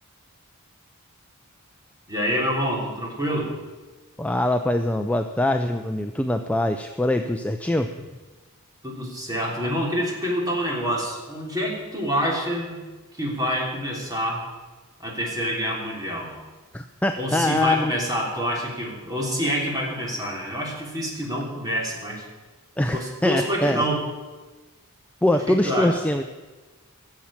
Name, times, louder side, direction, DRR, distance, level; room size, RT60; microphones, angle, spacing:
voice 1, 2.1-3.5 8.8-12.8 13.2-14.4 15.0-16.3 17.2-22.2 22.9-24.0 25.5-25.9, equal, 15° right, -2 dB, 3.3 m, -27 dB
voice 2, 4.2-7.9 16.7-17.9 22.8-23.8 25.2-26.2, left 1 dB, 5° left, 6 dB, 0.4 m, -23 dB
15.5 x 7.2 x 8.8 m, 1.2 s
head